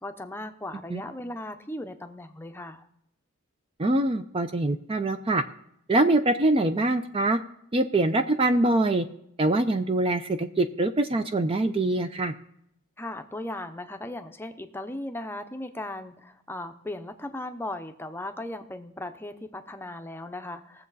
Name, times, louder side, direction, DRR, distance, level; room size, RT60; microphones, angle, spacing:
voice 1, 0.0-2.8 13.0-20.9, left 1 dB, 10° left, 7 dB, 0.7 m, -37 dB
voice 2, 3.8-5.4 5.9-7.4 7.7-9.1 9.4-12.3, right 2 dB, 25° right, 9 dB, 0.5 m, -24 dB
20.0 x 7.4 x 4.0 m, 0.74 s
head